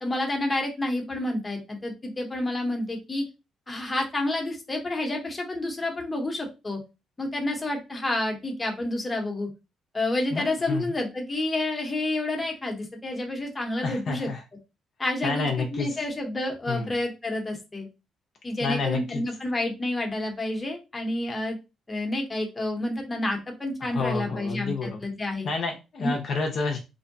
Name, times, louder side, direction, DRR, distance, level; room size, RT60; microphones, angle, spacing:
voice 1, 0.0-3.2 3.7-6.8 7.2-9.5 9.9-14.3 15.0-17.9 18.4-21.6 21.9-25.5 26.0-26.1, left 1 dB, 20° left, 2 dB, 0.8 m, -29 dB
voice 2, 13.8-14.4 15.2-15.9 16.7-16.9 18.6-19.2 23.8-25.0 25.4-26.8, left 4 dB, 60° left, 2 dB, 0.5 m, -29 dB
2.6 x 2.1 x 2.6 m, 0.27 s
cardioid pair, 90°, 0 cm